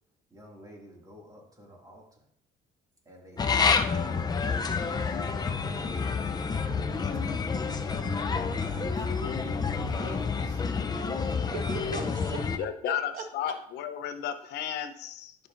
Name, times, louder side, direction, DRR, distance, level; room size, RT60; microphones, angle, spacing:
voice 1, 0.3-2.0 3.1-4.8 5.0-6.4 7.0-7.9 8.5-10.6, equal, 20° right, -1 dB, 2.3 m, -50 dB
sound 1, 3.4-12.6, left 5 dB, 25° left, 0.5 m, -29 dB
voice 2, 11.5-13.5, right 4 dB, 55° right, 5 dB, 1.1 m, -39 dB
voice 3, 12.6-15.4, left 10 dB, 80° left, 9 dB, 0.8 m, -33 dB
11.0 x 5.8 x 2.6 m, 0.65 s
cardioid pair, 110°, 17 cm